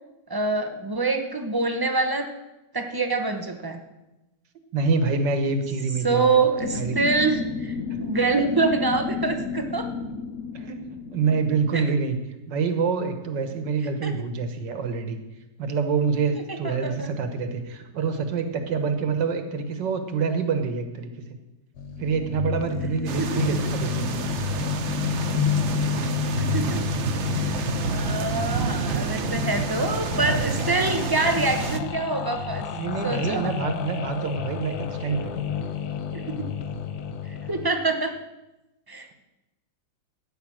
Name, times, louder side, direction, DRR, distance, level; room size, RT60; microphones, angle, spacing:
voice 1, 0.3-2.3 2.7-3.8 6.0-9.9 11.7-11.8 14.0-14.1 16.6-17.1 23.2-23.6 26.2-26.8 27.9-32.7 33.0-33.5 36.1-36.5 37.3-38.1 38.9-39.2, right 3 dB, 25° right, 6 dB, 0.4 m, -25 dB
voice 2, 4.7-6.3 6.7-7.1 7.9-8.0 10.5-12.2 12.5-15.2 15.6-21.1 22.0-24.2 30.5-30.7 32.7-35.4, right 5 dB, 70° right, 7 dB, 1.9 m, -26 dB
sound 1, 6.6-11.6, left 5 dB, 60° left, 1.0 m, -32 dB
sound 2, 21.8-37.7, left 7 dB, 80° left, 1.6 m, -30 dB
sound 3, 23.1-31.8, right 5 dB, 55° right, 0.8 m, -29 dB
13.0 x 9.3 x 6.3 m, 1.0 s
omnidirectional pair, 2.1 m